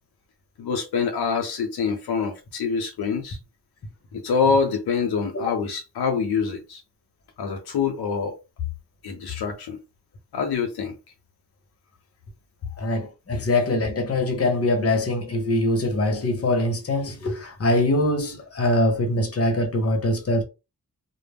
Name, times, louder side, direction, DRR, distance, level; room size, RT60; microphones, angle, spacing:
voice 1, 0.6-3.4 4.1-6.8 7.4-8.3 9.0-9.8 10.3-10.9, left 5 dB, 85° left, 0.6 m, -25 dB
voice 2, 12.8-20.4, left 1 dB, 40° left, 0.8 m, -23 dB
2.1 x 2.0 x 3.4 m
cardioid pair, 55°, 37 cm